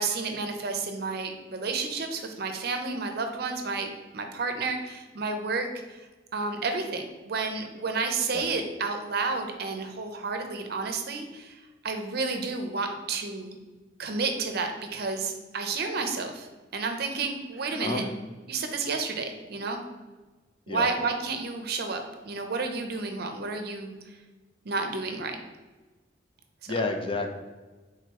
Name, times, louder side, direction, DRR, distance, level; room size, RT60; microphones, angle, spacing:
voice 1, 0.0-6.0 6.3-13.6 14.0-16.5 16.7-18.0 18.5-19.8 20.7-23.9 24.6-25.4, right 4 dB, 60° right, 5 dB, 0.6 m, -31 dB
Sigh, 17.5-18.2, left 1 dB, 5° right, 0.9 m, -39 dB
voice 2, 26.7-27.3, left 3 dB, 30° left, 5 dB, 0.4 m, -30 dB
3.8 x 3.0 x 4.6 m, 1.3 s
head